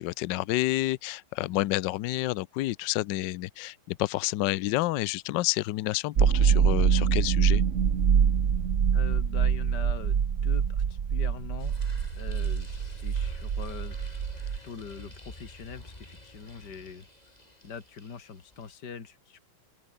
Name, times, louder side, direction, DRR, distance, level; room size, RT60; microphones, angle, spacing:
voice 1, 0.0-7.6, left 17 dB, 70° left, 1.2 m, -29 dB
sound 1, 6.2-14.6, right 7 dB, 45° right, 1.3 m, -25 dB
voice 2, 8.9-11.7 12.2-14.2 14.6-17.1 17.6-19.4, left 6 dB, 50° left, 3.0 m, -43 dB
sound 2, 11.6-18.7, left 1 dB, 20° left, 4.5 m, -47 dB
open air
omnidirectional pair, 2.3 m